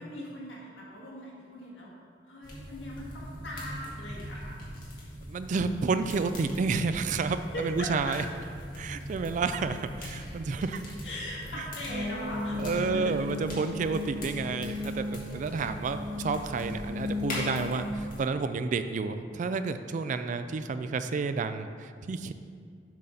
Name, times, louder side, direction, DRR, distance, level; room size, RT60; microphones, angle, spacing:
voice 1, 0.0-1.9 2.2-4.6 7.5-8.2 11.0-13.1, left 1 dB, 80° left, -5 dB, 1.8 m, -40 dB
sound 1, 2.4-18.2, equal, 50° left, 1.7 m, -41 dB
voice 2, 5.3-8.2 8.7-10.8 11.9-22.3, right 4 dB, 45° right, 10 dB, 0.3 m, -30 dB
sound 2, 11.9-17.8, left 3 dB, 80° right, 1.0 m, -36 dB
7.4 x 3.9 x 5.6 m, 2.2 s
head